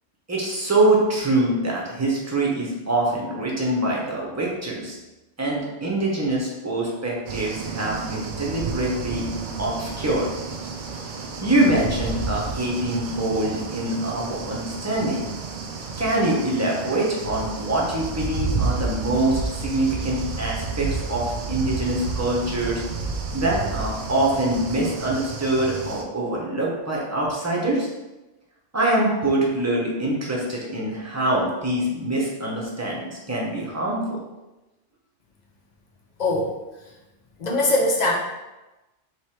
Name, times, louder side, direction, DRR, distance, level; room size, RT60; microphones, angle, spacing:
voice 1, 0.3-5.0 5.4-9.2 9.6-10.3 11.4-15.2 16.0-22.8 23.3-27.9 28.7-34.2, right 1 dB, 15° right, -3 dB, 0.7 m, -24 dB
sound 1, 7.3-26.0, right 4 dB, 55° right, 0.5 m, -31 dB
voice 2, 36.2-36.5 37.4-38.1, left 2 dB, 40° left, -1 dB, 0.8 m, -21 dB
3.3 x 3.2 x 4.5 m, 1.0 s
omnidirectional pair, 1.2 m